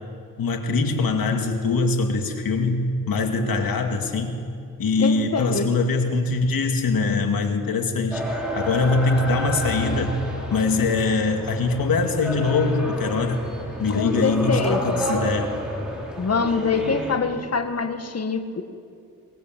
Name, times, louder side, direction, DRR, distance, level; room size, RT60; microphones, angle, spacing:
voice 1, 0.4-4.3 4.8-8.2 8.6-10.2 10.5-13.4 13.8-15.6, left 3 dB, 90° left, 5 dB, 2.3 m, -23 dB
voice 2, 5.0-5.7 13.9-15.0 16.2-18.6, left 4 dB, 45° left, 8 dB, 1.7 m, -24 dB
sound 1, 8.1-17.2, equal, ahead, 6.2 m, -30 dB
23.0 x 21.5 x 7.6 m, 2.5 s
cardioid pair, 80°, 34 cm